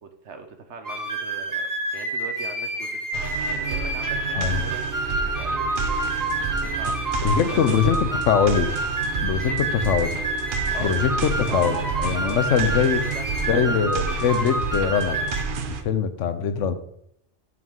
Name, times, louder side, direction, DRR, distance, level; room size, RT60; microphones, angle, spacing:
voice 1, 0.0-1.7 1.9-3.0 3.5-7.0 7.4-7.5 7.8-8.2 9.4-9.6 10.7-11.7 12.2-13.9, right 5 dB, 70° right, 7 dB, 1.2 m, -40 dB
sound 1, 0.8-15.4, right 2 dB, 20° right, 0.8 m, -28 dB
sound 2, 3.1-15.8, right 5 dB, 50° right, 0.8 m, -30 dB
voice 2, 7.2-8.8 9.2-10.2 10.8-13.0 13.5-15.2 15.8-16.7, left 7 dB, 85° left, 11 dB, 1.1 m, -22 dB
8.1 x 3.7 x 6.1 m, 0.73 s
omnidirectional pair, 1.2 m